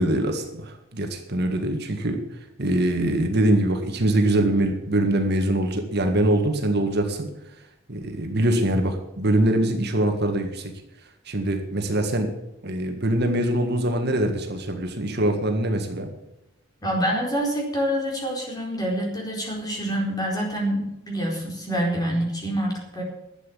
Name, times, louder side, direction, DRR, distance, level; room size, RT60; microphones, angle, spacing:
voice 1, 0.0-2.2 2.6-7.3 7.9-10.7 11.3-12.3 12.6-16.1, right 1 dB, 55° right, 4 dB, 1.8 m, -23 dB
voice 2, 16.8-23.0, equal, 20° left, -2 dB, 4.4 m, -26 dB
12.0 x 8.3 x 8.5 m, 0.89 s
head